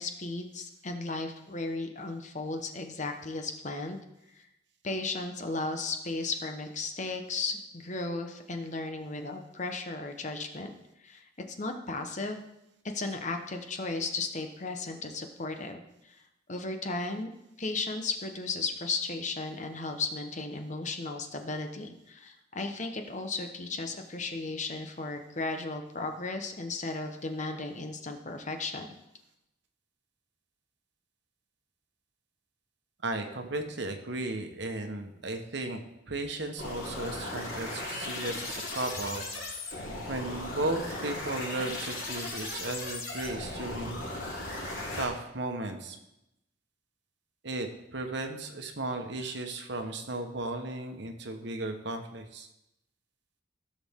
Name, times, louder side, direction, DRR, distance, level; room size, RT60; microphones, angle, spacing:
voice 1, 0.0-4.0 4.4-4.5 4.8-10.7 11.0-12.4 12.9-16.2 16.5-17.3 17.6-28.9, left 3 dB, 35° left, 5 dB, 0.9 m, -35 dB
voice 2, 33.0-35.8 36.1-39.2 40.1-44.1 44.9-46.0 47.4-47.7 47.9-52.5, right 2 dB, 60° right, 5 dB, 1.2 m, -35 dB
sound 1, 36.6-45.1, left 2 dB, 85° left, 4.0 m, -37 dB
16.0 x 6.4 x 3.7 m, 0.87 s
head